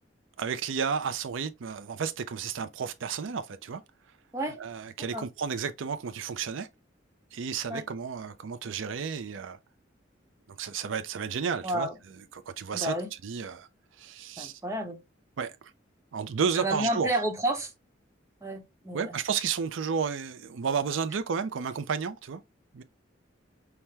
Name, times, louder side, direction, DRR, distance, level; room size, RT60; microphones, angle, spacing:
voice 1, 0.4-3.8 4.6-6.7 7.3-9.6 10.6-11.9 12.3-13.0 13.2-13.7 14.0-14.6 15.4-15.6 16.1-17.2 18.9-22.4 22.7-22.8, right 6 dB, 85° right, 0.5 m, -32 dB
voice 2, 11.6-11.9 12.7-13.1 14.4-15.0 16.5-17.7 18.4-19.1, right 1 dB, 15° right, 0.9 m, -31 dB
5.8 x 2.1 x 3.3 m
head